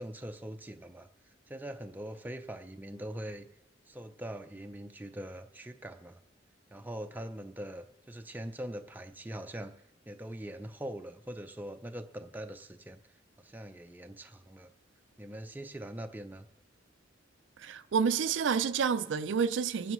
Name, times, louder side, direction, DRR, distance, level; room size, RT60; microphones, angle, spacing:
voice 1, 0.0-3.5 3.9-6.2 6.7-9.7 10.1-13.0 13.4-14.7 15.2-16.5, right 1 dB, 10° right, 0.4 m, -42 dB
voice 2, 17.6-19.9, right 6 dB, 75° right, 0.4 m, -29 dB
28.0 x 9.4 x 3.0 m
head